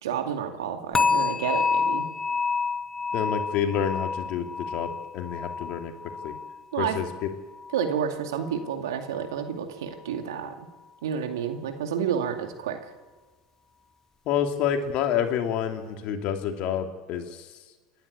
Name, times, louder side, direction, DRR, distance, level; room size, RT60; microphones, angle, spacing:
voice 1, 0.0-2.1 6.7-7.0 7.7-10.7 11.0-12.9, right 8 dB, 80° right, 5 dB, 2.3 m, -30 dB
sound 1, 0.9-8.0 8.3-8.7 9.2-9.3, left 5 dB, 25° left, 0.8 m, -29 dB
voice 2, 3.1-5.9 6.2-6.4 6.8-7.1 14.3-17.3, left 8 dB, 55° left, 5 dB, 2.7 m, -28 dB
28.0 x 11.5 x 8.5 m, 1.3 s
hypercardioid pair, 80°, 2 cm